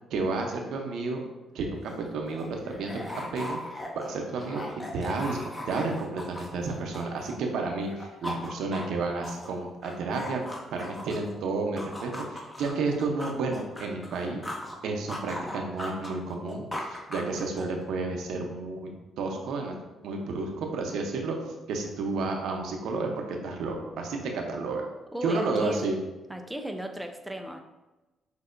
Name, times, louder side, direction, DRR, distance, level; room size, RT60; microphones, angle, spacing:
voice 1, 0.1-1.2 1.5-3.6 4.0-4.6 4.9-5.4 5.7-10.4 10.7-14.4 14.8-18.9 19.2-19.7 20.0-21.4 21.7-24.8 25.2-26.0, right 3 dB, 80° right, 2 dB, 0.7 m, -31 dB
sound 1, 1.7-7.5 7.8-11.3 11.8-14.8 15.1-17.8, left 1 dB, 15° left, 0.8 m, -39 dB
voice 2, 25.1-25.8 26.3-27.6, equal, 5° right, 5 dB, 0.4 m, -35 dB
6.3 x 2.8 x 2.6 m, 1.1 s
cardioid pair, 90°, 0 cm